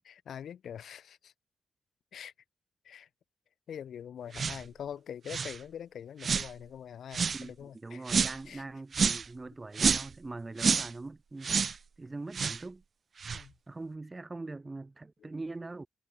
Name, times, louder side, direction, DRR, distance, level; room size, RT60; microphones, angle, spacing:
voice 1, 0.1-1.3 2.1-2.3 2.8-3.1 3.7-8.0 8.5-8.6 13.3-13.5 15.2-15.3, left 9 dB, 70° left, 4.0 m, -44 dB
sound 1, 4.3-4.6 5.3-5.6 6.2-6.5 7.1-7.4 8.1-8.4 8.9-9.3 9.7-10.1 10.6-10.9 11.4-11.8 12.3-12.6 13.2-13.4, right 5 dB, 50° right, 0.3 m, -28 dB
voice 2, 7.3-11.5 12.0-12.8 13.7-15.9, right 3 dB, 25° right, 1.3 m, -42 dB
cardioid pair, 90°, 0 cm